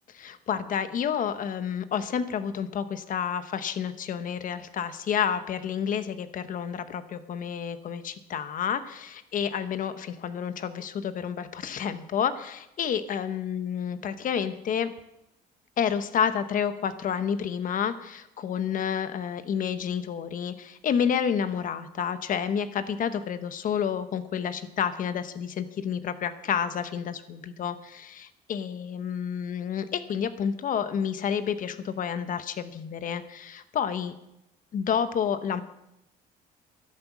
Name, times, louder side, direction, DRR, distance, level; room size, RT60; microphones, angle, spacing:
voice 1, 0.1-14.9 15.8-34.1 34.7-35.6, left 8 dB, 50° left, 11 dB, 1.1 m, -30 dB
12.0 x 11.0 x 6.1 m, 0.86 s
cardioid pair, 110°, 17 cm